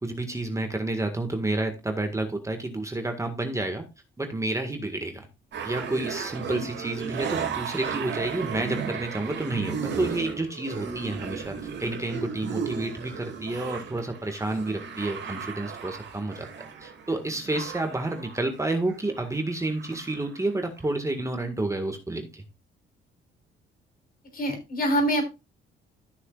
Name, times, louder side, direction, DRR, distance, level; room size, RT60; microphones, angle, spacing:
voice 1, 0.0-3.9 4.2-5.3 5.6-16.5 16.8-22.4, right 2 dB, 15° right, 5 dB, 1.8 m, -30 dB
sound 1, 5.5-19.3 19.6-20.4 20.9-21.0, right 6 dB, 65° right, 2.4 m, -35 dB
voice 2, 24.3-25.3, equal, 45° left, 5 dB, 3.8 m, -25 dB
14.5 x 6.4 x 2.5 m, 0.26 s
cardioid pair, 90°, 20 cm